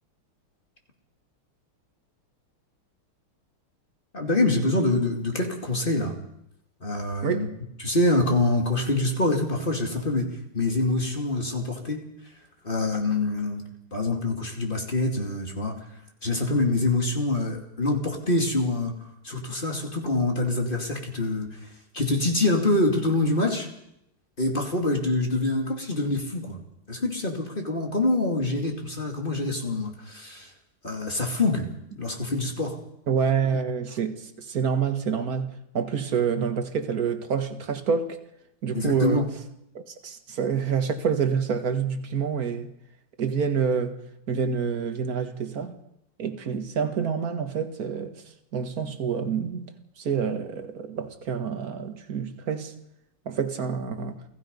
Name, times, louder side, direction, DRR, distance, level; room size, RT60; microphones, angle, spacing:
voice 1, 4.1-6.1 6.8-7.5 7.8-12.0 12.6-13.6 13.9-15.9 16.2-19.0 19.2-21.5 21.9-23.7 24.4-26.6 26.9-30.5 30.8-31.7 32.0-32.8 38.7-39.3, left 2 dB, 25° left, 2.7 m, -25 dB
voice 2, 33.1-38.2 38.6-39.3 39.8-42.7 43.2-43.9 44.3-45.7 46.2-48.2 48.5-49.7 50.0-52.7 53.3-54.2, right 6 dB, 45° right, 2.0 m, -27 dB
28.5 x 17.0 x 5.4 m
omnidirectional pair, 2.3 m